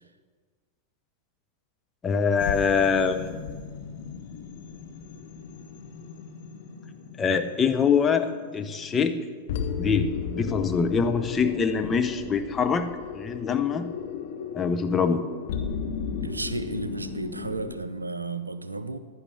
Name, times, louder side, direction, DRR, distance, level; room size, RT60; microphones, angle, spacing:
voice 1, 2.0-3.4 7.2-9.2 9.8-12.9 13.1-13.9 14.5-15.3, left 6 dB, 20° left, 7 dB, 0.7 m, -24 dB
sound 1, 2.4-17.8, left 7 dB, 55° left, 0.9 m, -36 dB
voice 2, 16.2-19.0, right 3 dB, 80° right, 12 dB, 0.5 m, -33 dB
15.0 x 11.0 x 3.4 m, 1.5 s
figure-of-eight pair, 90°, 0 cm